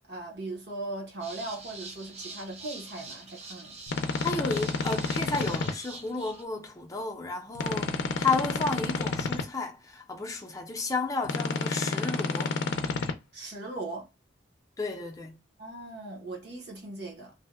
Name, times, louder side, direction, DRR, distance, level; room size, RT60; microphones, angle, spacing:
voice 1, 0.1-3.8 13.3-14.1 15.6-17.3, right 2 dB, 55° right, 0.9 m, -39 dB
sound 1, 1.2-6.4, right 3 dB, 35° right, 0.5 m, -44 dB
sound 2, 3.9-5.7 7.5-9.4 11.2-13.1, left 3 dB, 65° left, 0.5 m, -30 dB
voice 2, 4.2-12.6 14.8-15.4, left 3 dB, 20° left, 0.5 m, -32 dB
2.7 x 2.2 x 3.4 m
head